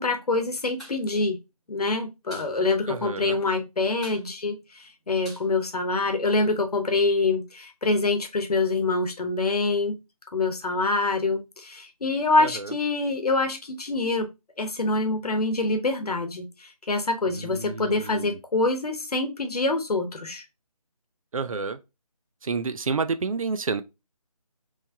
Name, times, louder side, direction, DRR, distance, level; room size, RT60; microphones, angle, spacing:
voice 1, 0.0-1.4 1.7-10.0 10.3-14.3 14.6-20.4, left 3 dB, 75° left, 0.9 m, -25 dB
sound 1, 0.8-1.0 1.3-1.4 1.7-2.5 2.8-2.9 3.2-3.6 3.9-6.3, equal, ahead, 1.3 m, -46 dB
voice 2, 2.9-3.4 12.4-12.7 17.3-18.4 21.3-21.8 22.4-23.8, right 4 dB, 60° right, 0.5 m, -30 dB
3.4 x 3.1 x 2.7 m
figure-of-eight pair, 165°, 20 cm